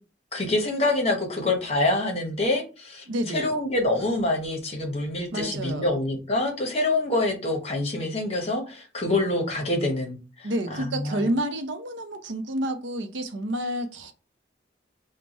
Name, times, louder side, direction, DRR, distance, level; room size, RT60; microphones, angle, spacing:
voice 1, 0.3-11.3, left 2 dB, 35° left, 0.9 m, -26 dB
voice 2, 3.1-3.5 5.3-5.9 10.4-14.1, right 1 dB, 80° right, 0.6 m, -29 dB
3.3 x 2.2 x 4.0 m
head